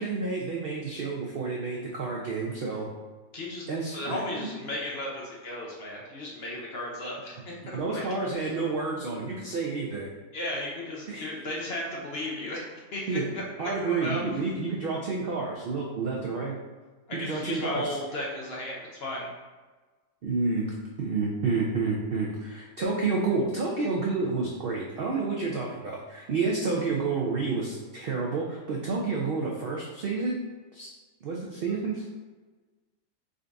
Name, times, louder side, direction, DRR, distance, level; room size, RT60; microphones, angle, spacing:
voice 1, 0.0-2.9 3.7-4.5 7.7-10.1 11.1-11.2 13.1-13.3 13.6-16.6 17.1-17.9 20.2-20.6 21.0-30.4 30.7-30.9 31.2-32.1, right 4 dB, 80° right, -2 dB, 0.5 m, -29 dB
voice 2, 3.3-3.7 3.9-8.5 10.3-14.4 17.1-19.3, left 1 dB, 55° left, -3 dB, 0.7 m, -35 dB
3.9 x 2.5 x 3.3 m, 1.3 s
omnidirectional pair, 1.5 m